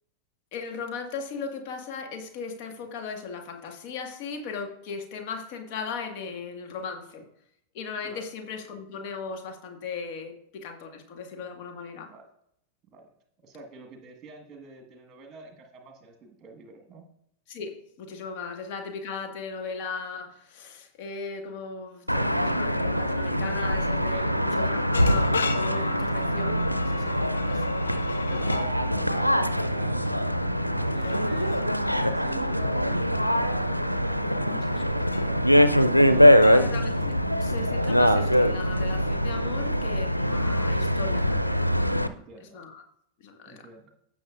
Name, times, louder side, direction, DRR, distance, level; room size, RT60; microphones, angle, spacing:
voice 1, 0.5-7.3 7.7-12.1 17.5-27.8 34.4-34.7 36.5-42.8 43.2-43.7, left 5 dB, 45° left, 5 dB, 1.7 m, -37 dB
voice 2, 13.4-17.0 24.1-24.3 25.7-25.9 28.3-30.1 30.8-35.5 42.1-42.6 43.5-43.9, right 2 dB, 25° right, 3 dB, 1.6 m, -47 dB
sound 1, 22.1-42.1, equal, 90° right, 0.4 m, -23 dB
sound 2, 24.9-28.7 30.9-31.7 35.1-35.4 36.4-37.4, left 5 dB, 70° left, 0.7 m, -36 dB
16.5 x 6.0 x 2.5 m, 0.73 s
figure-of-eight pair, 90°, 0 cm